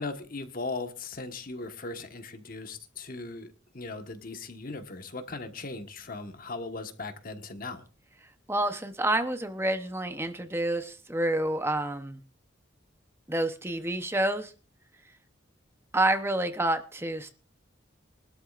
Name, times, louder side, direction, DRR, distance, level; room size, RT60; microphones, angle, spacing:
voice 1, 0.0-7.8, left 3 dB, 45° left, 7 dB, 1.5 m, -38 dB
voice 2, 8.5-12.2 13.3-14.5 15.9-17.3, right 1 dB, 15° right, 8 dB, 0.9 m, -28 dB
23.5 x 12.5 x 2.5 m, 0.33 s
head